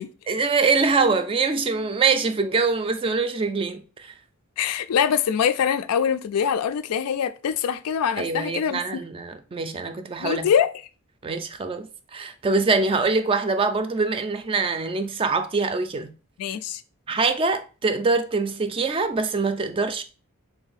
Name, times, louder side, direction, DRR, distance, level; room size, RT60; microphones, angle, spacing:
voice 1, 0.3-4.1 8.2-10.5 11.2-16.1 17.1-20.0, right 4 dB, 25° right, 0.3 m, -24 dB
voice 2, 4.6-8.8 10.2-10.7 16.4-16.8, left 8 dB, 85° left, 0.4 m, -23 dB
3.4 x 2.7 x 3.9 m
head